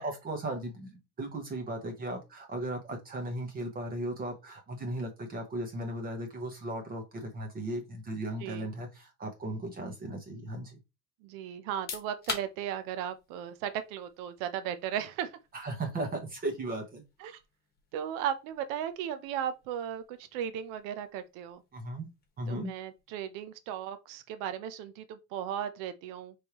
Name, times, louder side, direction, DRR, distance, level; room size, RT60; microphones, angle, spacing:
voice 1, 0.0-10.8 15.5-17.0 21.7-22.1 22.4-22.7, right 1 dB, 25° right, 1.1 m, -36 dB
voice 2, 11.2-15.4 17.2-17.4 17.9-21.6 22.5-26.3, right 9 dB, 85° right, 0.7 m, -36 dB
sound 1, 11.6-24.3, left 4 dB, 30° left, 1.3 m, -48 dB
5.3 x 3.4 x 2.9 m
cardioid pair, 160°, 32 cm